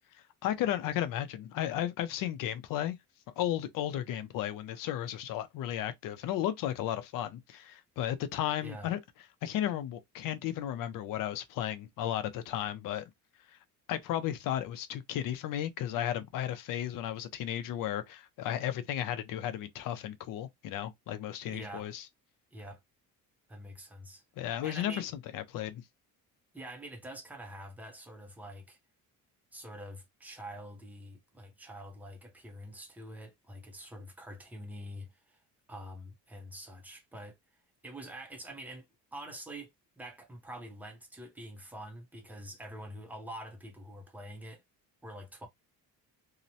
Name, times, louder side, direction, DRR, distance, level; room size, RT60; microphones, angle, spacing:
voice 1, 0.4-3.0 3.4-9.0 9.4-13.0 13.9-22.0 24.4-25.8, left 11 dB, 65° left, 0.6 m, -34 dB
voice 2, 8.6-8.9 21.5-21.9 22.5-22.8 23.5-24.2 24.6-25.1 26.5-28.8 29.5-35.4 35.7-37.4 37.8-38.9 39.1-39.7 40.0-44.6 45.0-45.5, right 1 dB, 5° right, 0.5 m, -46 dB
2.9 x 2.0 x 2.6 m
cardioid pair, 165°, 35 cm